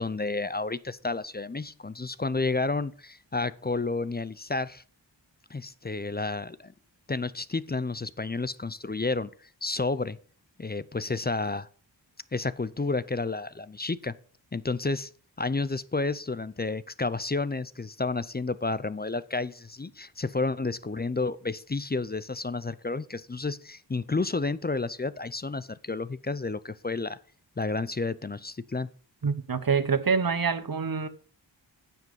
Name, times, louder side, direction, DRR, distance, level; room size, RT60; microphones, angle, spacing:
voice 1, 0.0-4.8 5.5-6.7 7.1-9.3 9.6-10.2 10.6-11.7 12.3-14.1 14.5-15.1 15.4-27.2 27.6-28.9, left 3 dB, 20° left, 0.5 m, -31 dB
voice 2, 29.2-31.1, right 5 dB, 50° right, 1.0 m, -26 dB
9.4 x 7.5 x 5.3 m
wide cardioid pair, 60°, 45 cm